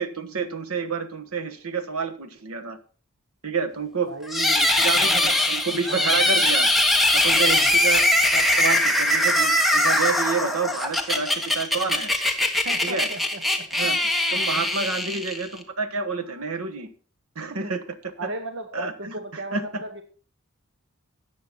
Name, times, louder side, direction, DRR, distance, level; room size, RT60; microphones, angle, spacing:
voice 1, 0.0-2.8 3.4-4.1 4.8-6.7 7.1-8.0 8.3-12.1 12.8-13.1 13.8-14.0 14.3-16.9 17.3-18.3 18.7-19.8, right 5 dB, 80° right, 9 dB, 1.3 m, -29 dB
voice 2, 4.1-5.4 5.9-6.2 7.4-7.7 12.6-14.0 14.8-15.2 17.5-17.7 18.2-20.0, right 2 dB, 60° right, 7 dB, 1.2 m, -37 dB
sound 1, 4.3-15.6, left 1 dB, ahead, 1.2 m, -21 dB
13.5 x 8.4 x 4.1 m, 0.38 s
head